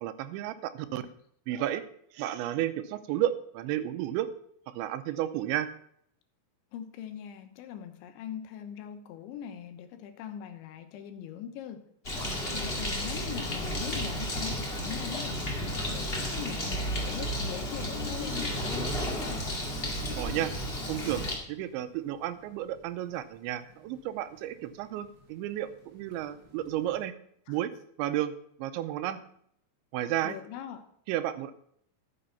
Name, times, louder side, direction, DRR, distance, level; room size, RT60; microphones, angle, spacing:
voice 1, 0.0-1.0 1.5-1.9 2.1-4.3 4.7-5.7 20.2-20.5 20.9-27.1 27.5-27.7 28.0-29.2 29.9-30.3 31.1-31.5, right 12 dB, 85° right, 3.0 m, -32 dB
voice 2, 6.7-11.9 12.5-19.5 27.5-27.6 30.2-30.9, left 9 dB, 80° left, 3.4 m, -41 dB
Bird, 12.0-21.4, equal, 65° left, 0.5 m, -33 dB
sound 1, 20.9-27.0, left 1 dB, 30° right, 3.1 m, -50 dB
13.0 x 7.1 x 5.7 m
omnidirectional pair, 5.3 m